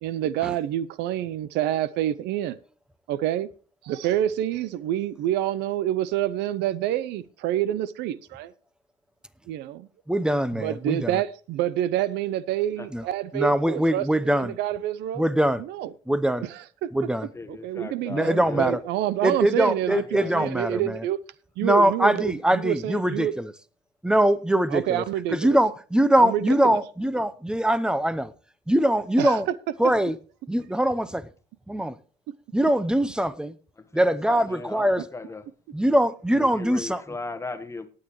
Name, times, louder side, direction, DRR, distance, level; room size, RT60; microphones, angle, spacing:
voice 1, 0.0-2.6 3.1-3.5 3.8-8.5 9.5-9.9 10.5-15.2 15.6-15.9 16.4-16.9 17.5-21.2 21.6-23.3 24.7-25.6 26.2-26.8 29.2-29.4, right 12 dB, 85° right, 0.6 m, -27 dB
voice 2, 10.1-11.2 12.9-13.1 13.3-14.6 15.1-15.6 16.1-16.5 16.9-17.3 18.1-18.8 19.2-21.1 21.6-23.5 24.0-28.3 28.7-29.5 29.8-30.1 30.5-31.2 31.7-32.0 32.5-33.5 33.9-35.0 35.7-37.0, right 1 dB, 5° right, 0.7 m, -22 dB
voice 3, 17.3-18.7 19.9-20.5 33.9-35.4 36.3-37.9, left 3 dB, 15° left, 1.2 m, -37 dB
18.5 x 8.7 x 3.1 m
cardioid pair, 110°, 17 cm